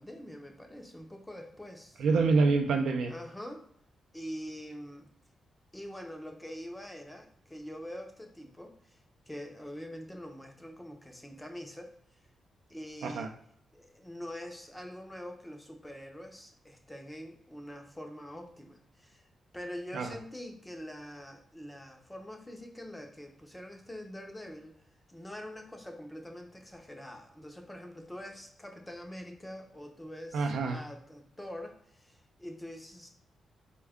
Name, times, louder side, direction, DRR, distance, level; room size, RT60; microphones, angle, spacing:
voice 1, 0.0-2.0 3.1-3.6 4.1-5.1 5.7-9.0 9.3-11.9 12.7-13.3 13.7-19.2 19.5-24.8 25.1-33.1, equal, 5° left, 3 dB, 0.5 m, -44 dB
voice 2, 2.0-3.1 13.0-13.3 19.9-20.1 30.3-30.8, right 4 dB, 75° right, 5 dB, 0.5 m, -26 dB
4.3 x 2.2 x 3.5 m, 0.66 s
wide cardioid pair, 165°, 0 cm